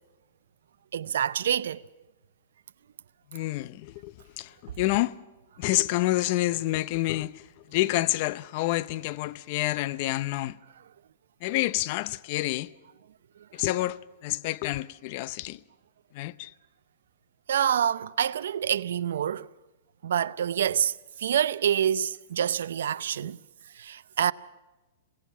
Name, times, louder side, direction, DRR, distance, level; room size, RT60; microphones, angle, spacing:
voice 1, 0.9-1.8 17.5-19.5 20.0-23.4 23.7-24.3, right 9 dB, 75° right, 0.6 m, -27 dB
voice 2, 3.3-5.1 5.6-7.4 7.7-10.6 11.4-12.7 13.5-15.6 16.1-16.5, left 17 dB, 45° left, 0.7 m, -28 dB
27.0 x 18.0 x 5.7 m
hypercardioid pair, 135°, 0 cm